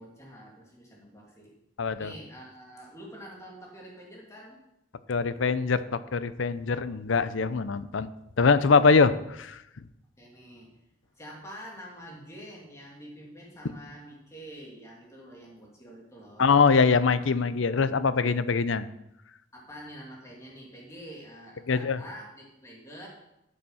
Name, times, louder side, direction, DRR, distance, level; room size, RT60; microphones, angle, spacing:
voice 1, 0.0-1.5 2.0-4.6 10.2-10.7 11.1-16.5 19.5-23.1, equal, 15° left, -2 dB, 2.6 m, -46 dB
voice 2, 1.8-2.1 5.1-5.8 6.1-8.1 8.4-9.6 16.4-18.9 21.7-22.0, left 5 dB, 75° left, 14 dB, 0.6 m, -23 dB
12.0 x 7.0 x 5.6 m, 0.87 s
head